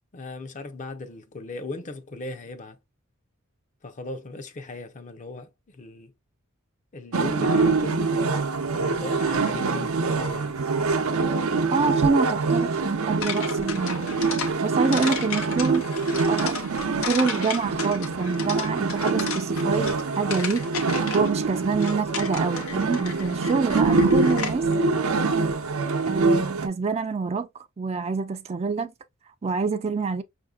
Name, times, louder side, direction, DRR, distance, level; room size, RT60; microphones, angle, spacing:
voice 1, 0.1-2.8 3.8-6.1 6.9-8.2 8.7-10.6, left 2 dB, 35° left, 0.6 m, -37 dB
sound 1, 7.1-26.7, right 4 dB, 85° right, 0.6 m, -25 dB
voice 2, 11.7-14.2 14.6-15.9 16.3-16.6 17.0-20.7 21.1-24.7 26.1-27.5 27.8-28.9 29.4-30.2, right 4 dB, 30° right, 0.4 m, -26 dB
sound 2, 13.2-24.8, left 6 dB, 90° left, 0.8 m, -34 dB
5.5 x 2.6 x 2.3 m
head